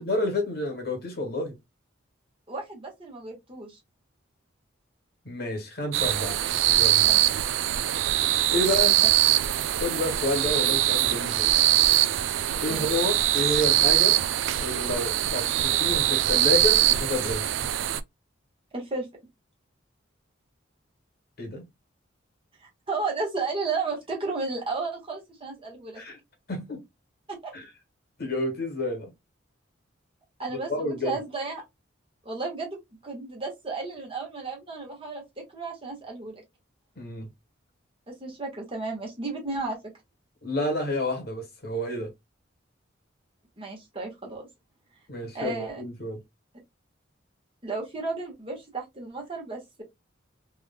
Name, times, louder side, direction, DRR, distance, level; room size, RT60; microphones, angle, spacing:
voice 1, 0.0-1.6 5.2-6.4 6.7-7.1 8.5-9.0 9.8-11.5 12.6-14.2 14.6-17.4 21.4-21.6 25.9-26.2 26.5-26.8 27.5-27.7 28.2-29.1 30.5-31.2 37.0-37.3 40.4-42.1 45.1-46.2, left 1 dB, 50° left, 1.3 m, -29 dB
voice 2, 2.5-3.8 7.0-7.2 12.7-12.9 18.7-19.1 22.6-26.0 27.3-27.5 30.4-31.6 32.2-32.8 33.0-36.4 38.1-39.8 43.6-44.5 45.3-45.8 47.6-49.8, right 3 dB, 30° right, 1.3 m, -33 dB
sound 1, 5.9-18.0, right 14 dB, 75° right, 0.3 m, -23 dB
3.4 x 3.1 x 2.2 m
head